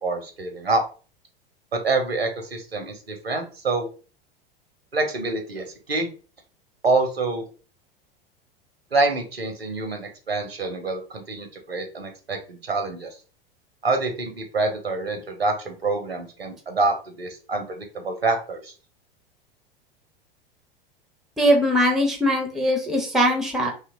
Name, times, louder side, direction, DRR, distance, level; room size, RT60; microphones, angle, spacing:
voice 1, 0.0-0.8 1.7-3.9 4.9-6.1 6.8-7.4 8.9-13.2 13.8-18.7, right 3 dB, 90° right, 5 dB, 0.6 m, -26 dB
voice 2, 21.4-23.7, equal, ahead, 3 dB, 0.4 m, -21 dB
2.8 x 2.2 x 2.6 m, 0.36 s
figure-of-eight pair, 85°, 29 cm